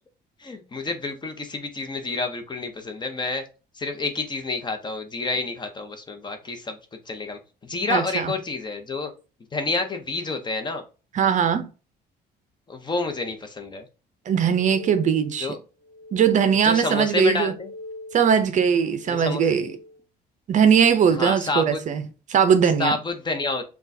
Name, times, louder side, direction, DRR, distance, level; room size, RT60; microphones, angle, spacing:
voice 1, 0.4-3.4 3.7-6.8 7.1-9.1 9.5-10.8 12.7-13.8 15.4-15.6 16.6-17.7 19.1-19.4 21.2-21.8 22.8-23.6, left 3 dB, 25° left, 0.8 m, -29 dB
voice 2, 7.9-8.3 11.1-11.7 14.3-15.5 16.1-17.5 18.1-19.7 20.5-23.0, right 7 dB, 45° right, 0.6 m, -20 dB
sound 1, 14.3-15.4 15.8-16.9 17.3-18.4 18.9-20.0, left 2 dB, 30° right, 1.4 m, -41 dB
6.0 x 2.3 x 2.7 m
cardioid pair, 110°, 17 cm